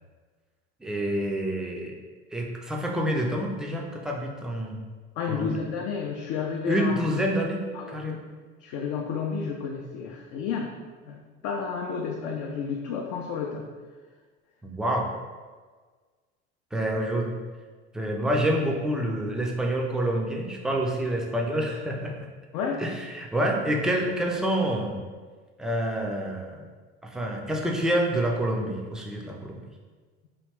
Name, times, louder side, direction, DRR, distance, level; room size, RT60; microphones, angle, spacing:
voice 1, 0.8-1.9 2.3-4.8 5.3-5.6 6.7-8.2 14.6-15.1 16.7-17.3 17.9-22.3 22.8-25.0 25.6-26.6 27.0-29.6, right 1 dB, ahead, -1 dB, 0.4 m, -27 dB
voice 2, 5.2-7.0 7.7-8.2 8.6-10.7 11.1-13.6 22.5-22.8, left 6 dB, 55° left, 0 dB, 0.5 m, -31 dB
3.1 x 2.4 x 3.3 m, 1.4 s
hypercardioid pair, 70°, 36 cm